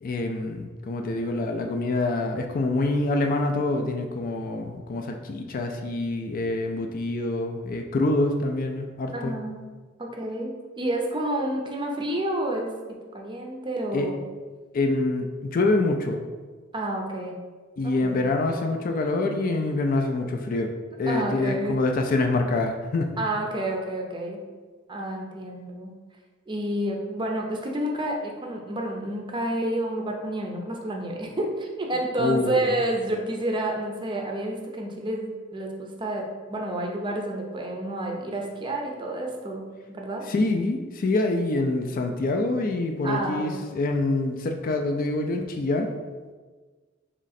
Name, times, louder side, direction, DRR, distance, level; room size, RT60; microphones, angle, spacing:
voice 1, 0.0-9.4 13.9-14.1 14.7-16.2 17.8-20.7 21.0-23.1 32.2-32.6 40.3-45.9, left 2 dB, 45° left, 4 dB, 0.4 m, -26 dB
voice 2, 9.1-9.6 10.0-12.7 13.1-14.2 16.7-17.4 17.8-18.2 21.1-21.8 23.2-24.4 24.9-25.9 26.5-40.3 43.0-43.7, right 1 dB, 25° right, 1 dB, 0.6 m, -29 dB
3.7 x 3.1 x 4.1 m, 1.4 s
head